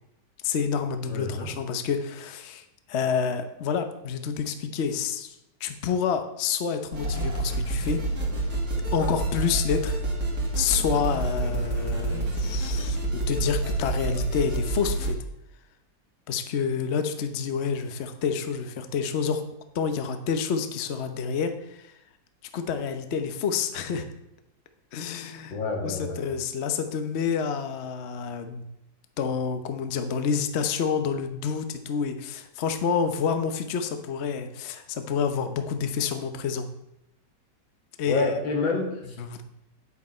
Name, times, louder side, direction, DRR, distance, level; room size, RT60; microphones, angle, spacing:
voice 1, 0.4-5.3 5.6-8.0 8.9-9.9 10.5-15.2 16.3-19.4 19.7-21.9 22.5-24.0 24.9-25.6 25.8-28.6 29.2-36.7 38.0-38.3 39.2-39.4, left 6 dB, 50° left, 8 dB, 0.9 m, -28 dB
voice 2, 1.1-1.5 9.0-9.1 25.5-26.2 38.1-39.2, left 3 dB, 90° left, 1 dB, 2.7 m, -28 dB
sound 1, 6.9-15.1, right 2 dB, 60° right, 2.5 m, -28 dB
9.9 x 8.3 x 4.3 m, 0.80 s
omnidirectional pair, 2.0 m